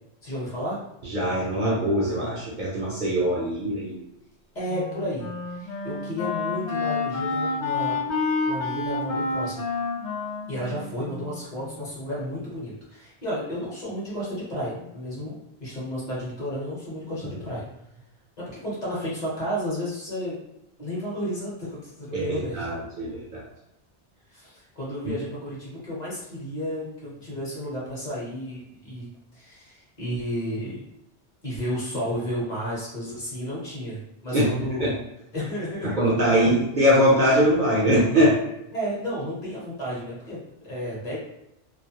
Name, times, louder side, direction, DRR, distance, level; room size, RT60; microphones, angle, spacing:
voice 1, 0.2-0.8 4.5-8.0 8.5-9.7 10.5-17.7 18.4-20.4 20.8-22.7 24.3-29.1 29.3-30.8 31.4-34.9 35.3-36.6 38.7-41.2, equal, 45° left, -7 dB, 0.9 m, -32 dB
voice 2, 1.1-4.0 22.1-23.4 34.3-34.5 34.8-34.9 36.0-38.4, equal, 55° right, -5 dB, 0.6 m, -22 dB
Wind instrument woodwind instrument, 4.7-11.9, left 3 dB, 85° left, 0.9 m, -29 dB
2.3 x 2.1 x 2.7 m, 0.84 s
omnidirectional pair, 1.1 m